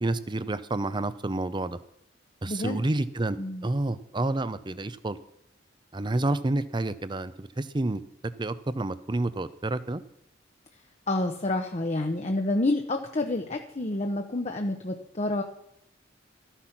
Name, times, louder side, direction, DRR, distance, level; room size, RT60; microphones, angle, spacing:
voice 1, 0.0-1.8 2.4-3.4 3.6-5.2 5.9-8.0 8.4-10.0, right 2 dB, 25° right, 14 dB, 0.6 m, -29 dB
voice 2, 2.5-2.8 3.4-3.7 11.1-15.4, left 2 dB, 40° left, 4 dB, 0.9 m, -28 dB
13.5 x 10.0 x 5.9 m, 0.77 s
head